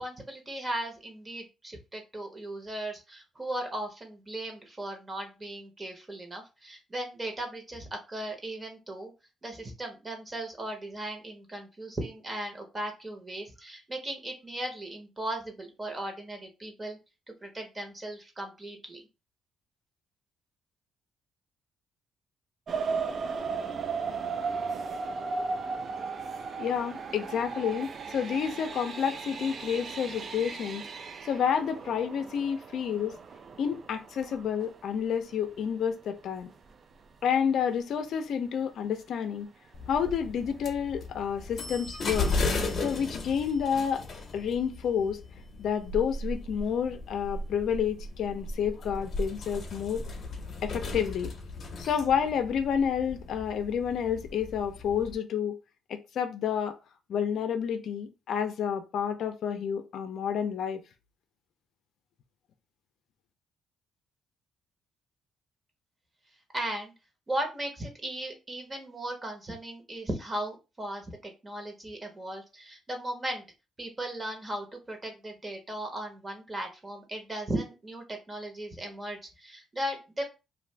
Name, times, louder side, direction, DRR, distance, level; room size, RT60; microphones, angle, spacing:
voice 1, 0.0-9.1 9.4-17.0 17.4-19.0 66.5-66.9 67.3-73.4 73.8-80.2, right 1 dB, 25° right, 1.0 m, -37 dB
sound 1, 22.7-35.3 35.9-36.0 36.5-36.7 37.0-37.1, right 5 dB, 50° right, 0.4 m, -36 dB
voice 2, 26.6-30.8 31.2-33.1 33.6-36.5 37.2-39.5 39.9-42.3 42.8-44.0 44.3-45.2 45.6-50.0 50.6-51.3 51.8-55.5 55.9-56.8 57.1-60.8, left 7 dB, 70° left, 0.4 m, -29 dB
sound 2, 39.7-55.1, left 2 dB, 50° left, 0.8 m, -36 dB
2.5 x 2.5 x 3.2 m
cardioid pair, 90°, 0 cm